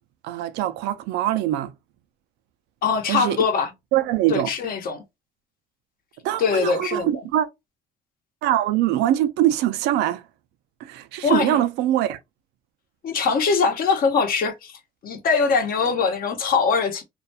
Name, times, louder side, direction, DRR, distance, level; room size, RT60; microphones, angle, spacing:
voice 1, 0.2-1.7 3.1-3.4 3.9-4.5 6.2-7.5 8.4-10.2 10.8-12.2, right 13 dB, 90° right, 0.4 m, -23 dB
voice 2, 2.8-3.7 4.3-5.0 6.4-7.1 11.2-11.6 13.0-17.0, left 5 dB, 60° left, 0.9 m, -22 dB
2.5 x 2.2 x 2.6 m
cardioid pair, 110°, 17 cm